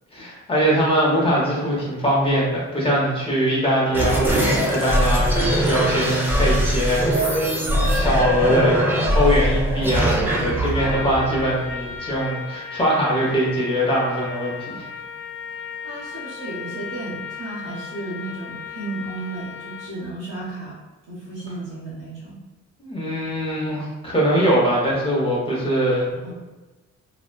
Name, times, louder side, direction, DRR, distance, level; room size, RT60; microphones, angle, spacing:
voice 1, 0.1-7.5 7.9-8.8 9.1-14.9 22.8-26.3, equal, 20° left, -5 dB, 0.9 m, -22 dB
sound 1, 3.9-12.1, equal, 5° right, 0.5 m, -21 dB
Trumpet, 10.7-20.1, left 6 dB, 55° left, 0.4 m, -36 dB
voice 2, 15.8-20.8 21.1-22.4 26.2-26.3, right 2 dB, 80° right, -10 dB, 1.2 m, -33 dB
2.8 x 2.2 x 2.3 m, 1.2 s
cardioid pair, 90°, 30 cm